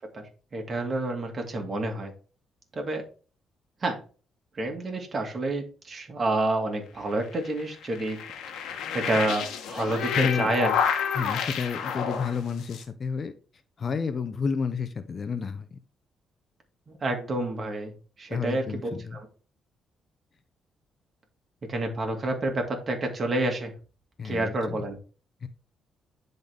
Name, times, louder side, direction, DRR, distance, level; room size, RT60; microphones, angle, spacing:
voice 1, 0.5-2.1 2.7-3.0 3.8-4.0 4.5-8.2 8.5-8.7 8.9-10.7 16.9-17.9 18.2-19.3 21.7-23.7 24.2-25.0, right 2 dB, 40° right, 3 dB, 2.2 m, -29 dB
sound 1, 7.1-12.8, left 7 dB, 80° left, 1.2 m, -29 dB
voice 2, 10.2-10.5 11.1-13.3 13.8-15.8 18.3-19.2 24.2-24.8 25.4-25.5, left 5 dB, 45° left, 11 dB, 0.7 m, -30 dB
10.5 x 4.0 x 3.5 m, 0.38 s
cardioid pair, 90°, 0 cm